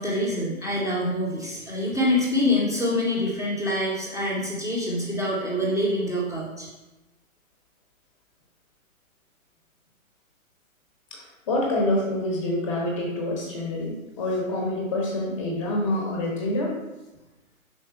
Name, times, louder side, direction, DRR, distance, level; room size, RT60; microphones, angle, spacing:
voice 1, 0.0-6.7, left 1 dB, ahead, -18 dB, 0.4 m, -25 dB
voice 2, 11.1-16.7, left 1 dB, 20° left, -1 dB, 1.2 m, -27 dB
5.0 x 4.4 x 4.6 m, 1.0 s
hypercardioid pair, 150°, 43 cm